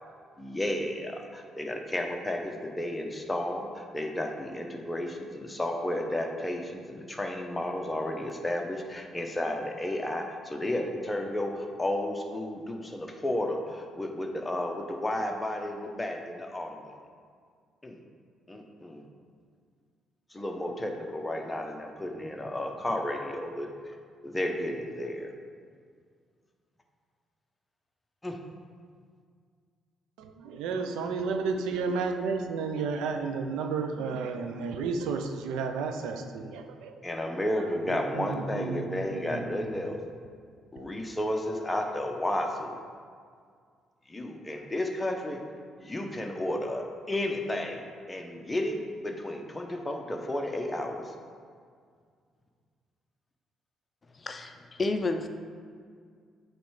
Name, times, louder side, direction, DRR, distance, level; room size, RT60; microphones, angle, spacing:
voice 1, 0.4-16.9 17.8-18.0 18.5-19.0 20.3-23.7 24.2-25.3 28.2-28.4 37.0-40.0 40.7-42.8 44.1-45.4 45.8-51.1, left 1 dB, 15° left, 2 dB, 0.9 m, -32 dB
voice 2, 30.2-36.9 37.6-39.5 39.9-40.0, right 4 dB, 85° right, 6 dB, 0.5 m, -32 dB
voice 3, 54.2-55.3, left 3 dB, 35° left, 7 dB, 0.5 m, -30 dB
8.2 x 3.2 x 4.7 m, 2.1 s
supercardioid pair, 75°, 0 cm